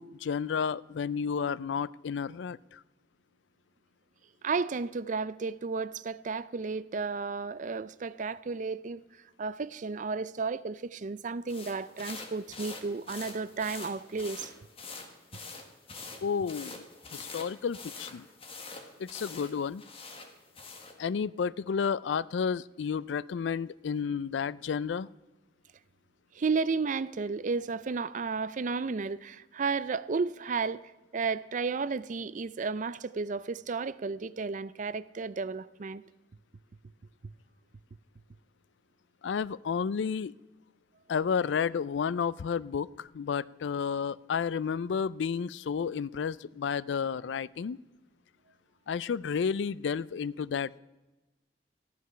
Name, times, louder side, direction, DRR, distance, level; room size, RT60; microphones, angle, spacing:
voice 1, 0.0-2.8 16.2-16.8 17.1-18.3 19.0-19.8 21.0-25.1 39.2-40.3 41.1-47.8 48.9-50.8, left 6 dB, 85° left, 0.4 m, -31 dB
voice 2, 4.4-9.0 9.4-14.5 26.3-30.8 31.1-36.0, right 4 dB, 45° right, 0.4 m, -33 dB
sound 1, 11.5-21.0, left 4 dB, 35° left, 1.6 m, -45 dB
14.5 x 11.0 x 5.7 m
head